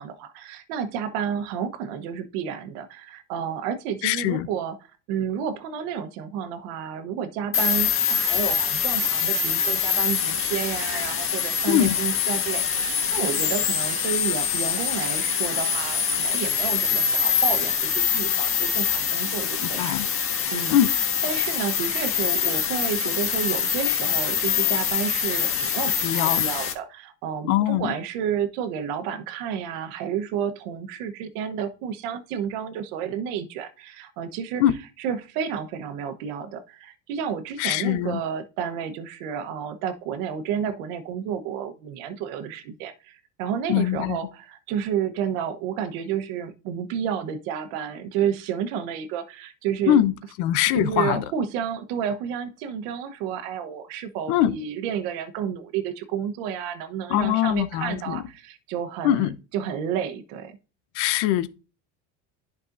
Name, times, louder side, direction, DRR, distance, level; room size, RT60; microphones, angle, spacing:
voice 1, 0.0-4.8 5.1-20.8 21.2-34.6 35.0-50.0 50.7-60.6, right 8 dB, 80° right, 1.1 m, -31 dB
voice 2, 4.0-4.5 11.7-11.9 19.6-20.1 20.7-20.9 26.0-26.4 27.4-27.9 34.6-34.7 37.6-38.2 43.7-44.2 49.9-50.1 50.4-51.2 54.3-54.5 57.1-58.2 59.0-59.3 60.9-61.5, left 12 dB, 85° left, 0.8 m, -22 dB
sound 1, 7.5-26.7, left 8 dB, 40° left, 1.5 m, -24 dB
11.0 x 5.3 x 2.6 m
cardioid pair, 135°, 35 cm